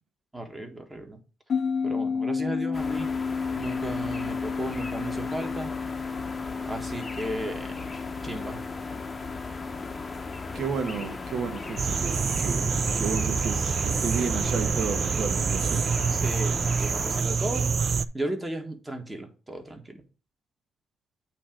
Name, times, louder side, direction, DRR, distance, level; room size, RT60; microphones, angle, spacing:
voice 1, 0.3-1.2 1.8-3.1 3.5-5.7 6.6-7.9 8.2-8.6 16.1-17.7 18.1-20.0, right 1 dB, 15° right, 1.5 m, -35 dB
sound 1, 1.5-14.3, left 5 dB, 50° left, 0.5 m, -33 dB
sound 2, 2.7-17.2, left 3 dB, 25° left, 0.8 m, -38 dB
voice 2, 10.5-15.9, right 5 dB, 65° right, 1.1 m, -32 dB
sound 3, 11.8-18.1, right 6 dB, 45° right, 0.3 m, -26 dB
8.5 x 2.9 x 4.9 m
cardioid pair, 90°, 0 cm